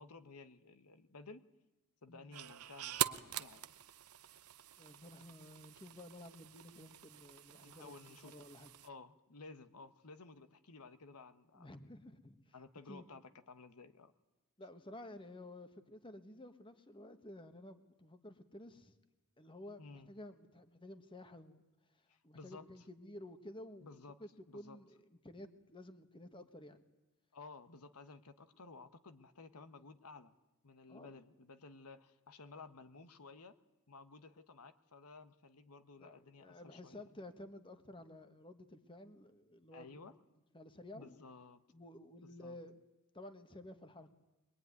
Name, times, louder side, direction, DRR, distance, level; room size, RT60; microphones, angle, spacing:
voice 1, 0.0-1.4 2.0-3.7 7.6-8.3 8.8-11.7 12.5-14.1 19.8-20.1 22.1-22.9 23.8-24.2 24.5-24.8 27.3-30.3 30.6-33.6 33.9-37.0 39.7-40.1 40.9-41.6 42.2-42.6, left 3 dB, 85° left, 11 dB, 1.2 m, -55 dB
sound 1, 2.3-8.9, right 11 dB, 75° right, 0.8 m, -44 dB
voice 2, 4.8-7.9 8.2-8.7 11.5-12.5 12.9-13.1 14.6-18.9 19.4-21.6 21.9-23.9 24.2-25.0 25.2-26.8 30.9-31.1 36.0-40.1 40.5-41.1 41.7-42.8 43.1-44.1, left 1 dB, 25° left, 8 dB, 1.5 m, -53 dB
23.0 x 22.0 x 9.6 m, 1.0 s
head